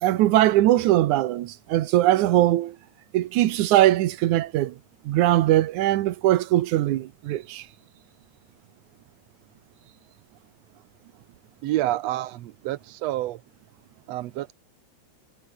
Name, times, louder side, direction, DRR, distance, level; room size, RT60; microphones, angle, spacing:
voice 1, 0.0-2.8 3.1-4.8 5.1-7.6, right 14 dB, 90° right, 2.4 m, -21 dB
voice 2, 11.6-13.4 14.1-14.5, right 15 dB, 70° right, 1.8 m, -28 dB
omnidirectional pair, 3.4 m